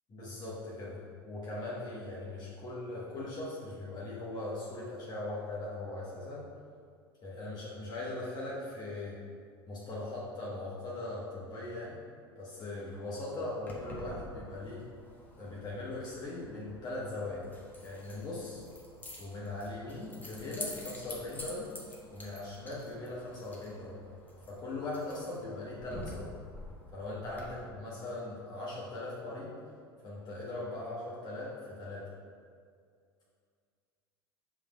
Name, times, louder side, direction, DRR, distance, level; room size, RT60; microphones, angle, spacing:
voice 1, 0.1-6.5 7.2-9.2 9.7-12.0 12.3-14.8 15.4-17.4 17.8-18.6 19.2-21.7 22.1-24.0 24.5-26.3 26.9-29.5 30.0-32.0, left 2 dB, 35° left, -7 dB, 1.4 m, -40 dB
Keys jangling, 13.6-27.4, left 1 dB, 15° left, 1.2 m, -48 dB
5.3 x 3.6 x 4.9 m, 2.2 s
hypercardioid pair, 80°, 13 cm